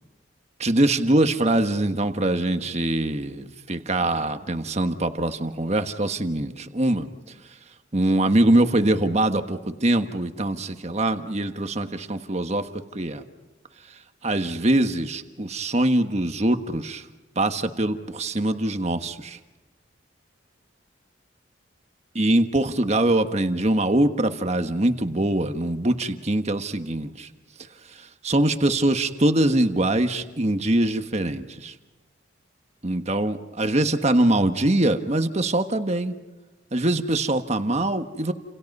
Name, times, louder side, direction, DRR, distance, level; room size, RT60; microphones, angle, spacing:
voice 1, 0.6-7.1 7.9-13.2 14.2-17.0 17.3-19.4 22.1-27.3 28.2-31.7 32.8-36.1 36.7-38.3, right 1 dB, 35° right, 8 dB, 1.4 m, -23 dB
30.0 x 28.5 x 5.5 m, 1.2 s
head